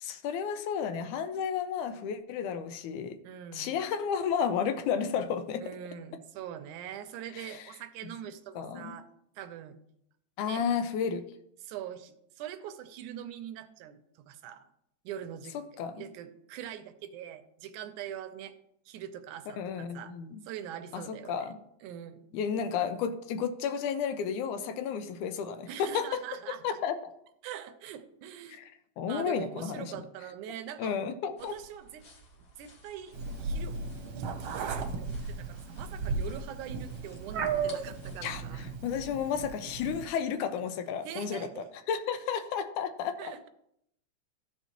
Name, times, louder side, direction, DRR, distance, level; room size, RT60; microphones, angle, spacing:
voice 1, 0.0-3.2 3.5-5.7 7.4-7.6 8.6-9.0 10.4-11.3 15.5-16.1 19.6-20.4 20.9-21.6 22.3-26.2 26.6-27.0 29.0-29.9 30.8-31.5 38.2-38.4 38.8-41.5 41.9-43.3, left 7 dB, 85° left, 9 dB, 2.1 m, -32 dB
voice 2, 3.2-3.8 5.6-9.1 9.4-9.8 10.4-10.7 11.6-14.7 15.1-15.6 15.9-18.5 18.9-20.1 20.4-21.5 21.8-22.3 25.7-26.8 27.4-28.6 29.1-31.0 31.4-32.1 32.4-33.8 34.2-38.7 41.0-41.7 43.2-43.5, right 10 dB, 90° right, 9 dB, 2.1 m, -43 dB
sound 1, 31.4-38.3, equal, 55° left, 2.2 m, -56 dB
Meow, 33.1-40.0, right 4 dB, 70° right, 1.6 m, -35 dB
13.5 x 5.3 x 3.0 m, 0.74 s
omnidirectional pair, 3.5 m